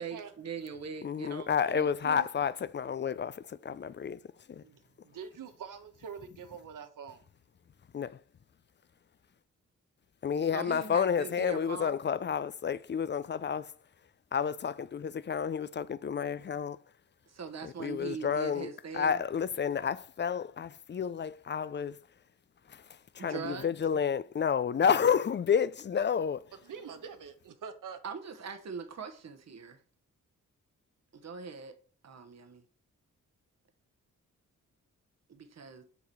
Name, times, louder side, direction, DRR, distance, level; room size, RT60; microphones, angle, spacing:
voice 1, 0.0-1.5 10.5-11.9 17.3-19.2 23.2-24.0 28.0-29.8 31.1-31.7 32.0-32.6 35.3-35.8, right 5 dB, 55° right, 1.1 m, -41 dB
voice 2, 1.0-4.2 4.5-4.6 7.9-8.2 10.2-13.7 14.3-16.8 17.6-18.7 18.9-22.0 22.7-22.8 23.2-26.4, left 7 dB, 35° left, 0.4 m, -30 dB
voice 3, 1.7-2.3 4.6-7.2 26.5-28.0, right 7 dB, 80° right, 1.0 m, -45 dB
7.1 x 3.9 x 4.6 m
cardioid pair, 60°, 32 cm